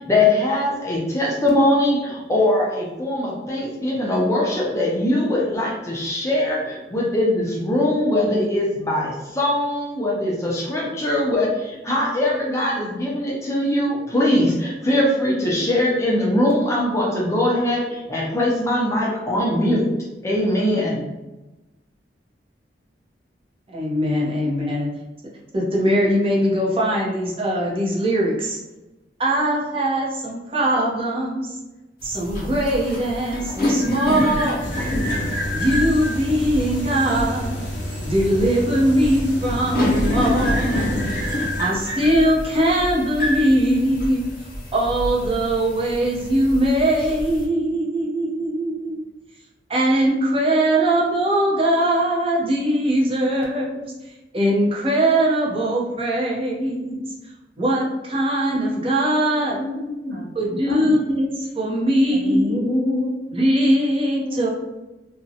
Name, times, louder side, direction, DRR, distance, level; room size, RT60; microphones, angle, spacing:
voice 1, 0.0-19.9 20.2-21.0, left 1 dB, 15° left, -4 dB, 0.5 m, -21 dB
voice 2, 23.7-24.9 25.5-28.6 29.2-31.6 32.0-34.6 35.5-37.7 38.0-41.0 41.6-44.2 44.7-49.0 49.7-53.8 54.3-57.1 57.6-59.6 60.3-62.7 63.3-64.5, right 1 dB, 30° right, -4 dB, 0.6 m, -21 dB
sound 1, 32.0-47.5, left 1 dB, 55° left, 0.7 m, -27 dB
sound 2, 34.6-41.6, equal, 80° left, 0.9 m, -31 dB
voice 3, 59.6-60.3 60.7-60.9 62.1-63.2 64.2-64.5, left 1 dB, 60° right, -5 dB, 0.8 m, -26 dB
2.5 x 2.0 x 2.7 m, 1.1 s
head